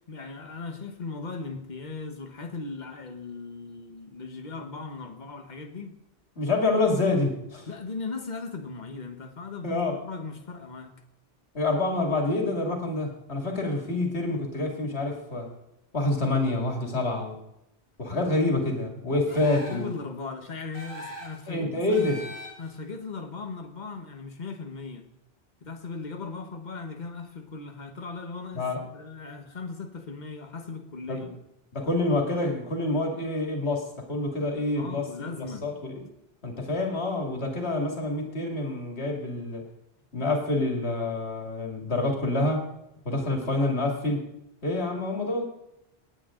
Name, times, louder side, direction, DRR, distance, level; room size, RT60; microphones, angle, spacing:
voice 1, 0.0-6.0 7.7-11.0 18.2-18.5 19.3-22.0 22.6-25.1 25.6-28.7 28.9-31.3 34.7-35.7, left 4 dB, 45° left, 5 dB, 1.4 m, -38 dB
voice 2, 6.4-7.7 9.6-10.0 11.5-15.5 15.9-17.4 18.0-19.9 21.5-22.2 28.5-28.8 31.1-31.3 31.7-35.1 35.4-36.1 36.4-39.7 40.1-42.7 43.1-44.2 44.6-45.4, left 2 dB, 85° left, 2 dB, 2.7 m, -27 dB
sound 1, 19.3-19.9 20.7-21.4 21.9-22.8, equal, 15° right, 3.9 m, -41 dB
18.5 x 9.0 x 3.8 m, 0.82 s
omnidirectional pair, 1.1 m